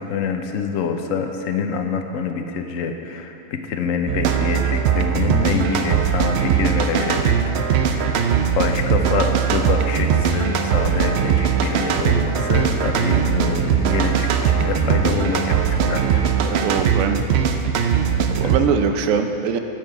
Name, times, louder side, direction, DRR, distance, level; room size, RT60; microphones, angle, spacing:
voice 1, 0.0-8.2 8.5-16.3 18.1-18.6, left 6 dB, 80° left, 5 dB, 1.1 m, -26 dB
sound 1, 4.1-18.6, right 7 dB, 65° right, 0.8 m, -20 dB
voice 2, 16.4-17.2 18.4-19.6, right 6 dB, 90° right, 7 dB, 1.0 m, -21 dB
8.8 x 7.5 x 4.6 m, 2.8 s
omnidirectional pair, 1.3 m